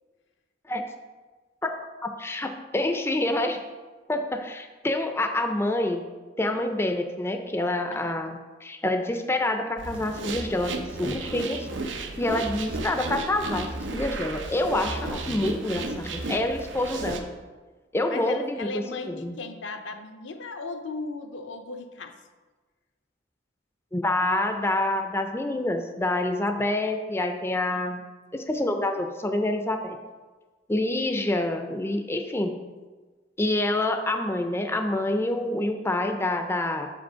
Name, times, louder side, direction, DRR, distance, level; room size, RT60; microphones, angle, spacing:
voice 1, 2.0-3.6 4.1-6.0 6.4-11.7 12.2-17.3 17.9-18.7 19.1-19.4 23.9-28.0 28.3-30.0 30.7-32.6 33.4-36.9, left 1 dB, 15° left, 5 dB, 0.5 m, -27 dB
sound 1, 9.8-17.2, right 2 dB, 85° right, 0.8 m, -33 dB
voice 2, 18.1-22.2 26.4-26.7 27.7-28.0, left 3 dB, 75° left, 6 dB, 0.7 m, -37 dB
6.7 x 5.2 x 5.6 m, 1.3 s
head